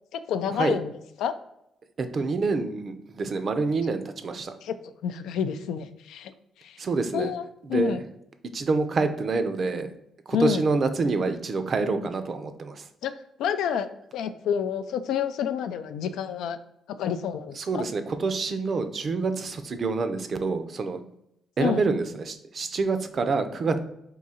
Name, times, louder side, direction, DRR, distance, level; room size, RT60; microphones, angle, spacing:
voice 1, 0.1-0.9 1.2-1.3 4.6-4.7 5.0-6.3 6.6-6.8 7.1-7.4 7.7-8.0 10.3-10.6 13.0-13.1 13.4-16.6 17.0-17.8 21.6-21.8, left 8 dB, 85° left, 10 dB, 0.3 m, -28 dB
voice 2, 2.0-4.5 6.8-7.3 7.7-8.0 8.5-9.9 10.3-12.8 17.6-21.0 21.6-23.8, right 4 dB, 45° right, 9 dB, 0.5 m, -27 dB
3.7 x 2.7 x 4.2 m, 0.81 s
cardioid pair, 90°, 0 cm